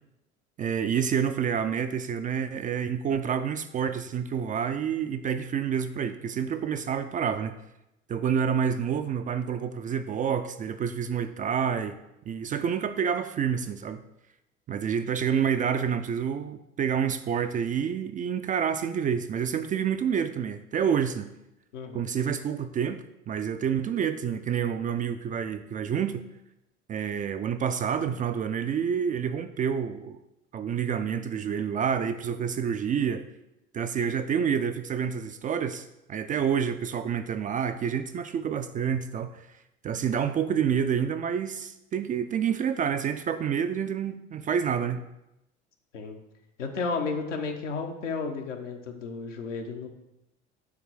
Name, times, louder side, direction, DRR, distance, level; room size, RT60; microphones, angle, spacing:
voice 1, 0.6-7.6 8.1-12.0 12.3-14.0 14.7-21.3 21.9-26.2 26.9-30.2 30.5-33.3 33.7-39.5 39.8-45.1, right 7 dB, 25° right, 9 dB, 0.3 m, -28 dB
voice 2, 21.7-22.1 45.9-46.2 46.6-49.9, left 4 dB, 80° left, 3 dB, 1.0 m, -33 dB
7.4 x 3.2 x 6.1 m, 0.88 s
figure-of-eight pair, 65°, 36 cm